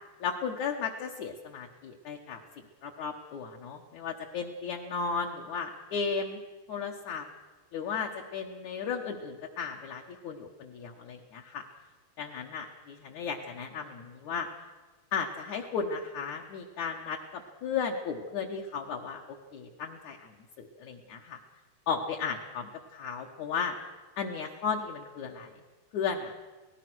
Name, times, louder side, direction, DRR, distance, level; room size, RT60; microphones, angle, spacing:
voice 1, 0.2-2.4 2.8-6.4 6.7-7.3 7.7-11.6 12.2-14.5 15.1-21.4 21.9-23.8 24.2-25.5 25.9-26.3, left 5 dB, 60° left, -1 dB, 2.3 m, -35 dB
27.5 x 19.0 x 6.3 m, 1.2 s
omnidirectional pair, 4.9 m